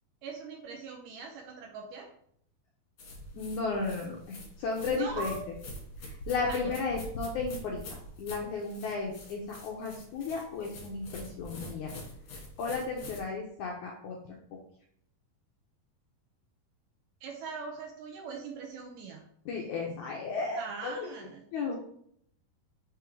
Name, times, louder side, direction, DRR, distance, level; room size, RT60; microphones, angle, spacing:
voice 1, 0.2-2.1 4.8-5.4 6.5-6.8 17.2-19.3 20.5-21.4, right 4 dB, 75° right, 2 dB, 2.0 m, -41 dB
sound 1, 3.0-13.2, left 1 dB, 55° left, 2.5 m, -45 dB
voice 2, 3.3-5.3 6.0-7.8 8.2-11.9 12.6-14.2 19.4-21.1 21.5-21.8, left 4 dB, 75° left, -1 dB, 1.8 m, -34 dB
6.1 x 3.6 x 4.6 m, 0.65 s
omnidirectional pair, 4.4 m